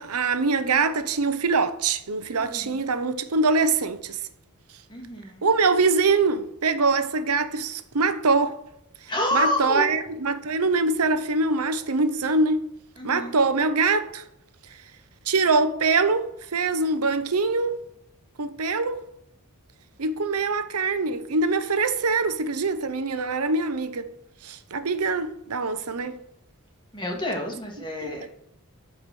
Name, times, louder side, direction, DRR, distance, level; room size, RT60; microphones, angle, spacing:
voice 1, 0.0-4.2 5.4-8.6 9.3-12.6 13.0-14.2 15.3-17.7 18.4-19.0 20.0-24.1 24.4-26.2 28.0-28.1, right 3 dB, 85° right, 0.9 m, -23 dB
voice 2, 2.3-2.8 4.9-5.5 9.1-9.9 13.0-13.3 26.9-28.3, left 1 dB, 20° left, 2.6 m, -28 dB
12.5 x 4.9 x 6.3 m
head